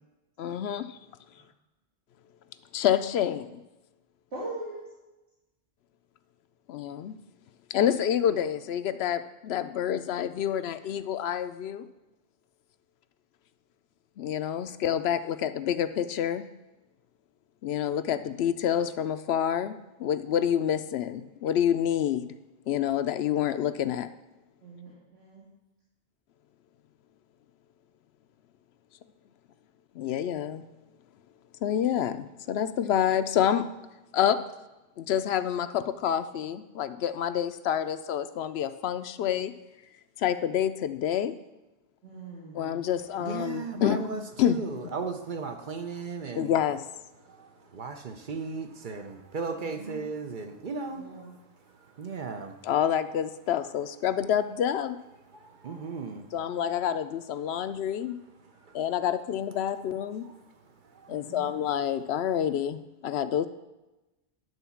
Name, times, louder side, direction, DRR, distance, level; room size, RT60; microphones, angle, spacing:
voice 1, 0.4-1.0 2.7-3.6 6.7-7.2 7.7-11.9 14.2-16.5 17.6-22.3 22.7-24.1 29.9-30.7 31.6-33.7 34.1-34.4 35.0-39.5 40.2-41.4 42.5-44.1 44.4-44.9 46.3-46.8 52.6-55.0 56.3-58.2 58.7-60.3 61.1-63.5, left 9 dB, 75° left, 0.8 m, -28 dB
voice 2, 4.3-4.8 24.6-25.4 42.0-42.7 49.5-50.0 50.9-51.3 61.1-61.5, right 2 dB, 75° right, 3.1 m, -41 dB
voice 3, 43.2-46.5 47.7-51.1 52.0-52.6 55.6-56.3, right 4 dB, 50° right, 0.8 m, -35 dB
11.0 x 4.0 x 7.0 m
omnidirectional pair, 1.1 m